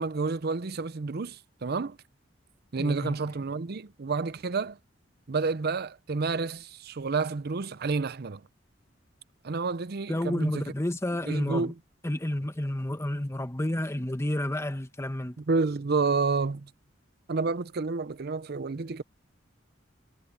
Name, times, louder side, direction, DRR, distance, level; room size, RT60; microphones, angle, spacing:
voice 1, 0.0-2.0 2.7-4.8 5.3-8.4 9.4-10.7 11.3-11.7 15.4-16.7 17.3-19.0, right 4 dB, 55° right, 0.6 m, -29 dB
voice 2, 2.8-3.2 10.1-11.7 12.0-15.4, left 1 dB, 15° left, 1.3 m, -30 dB
head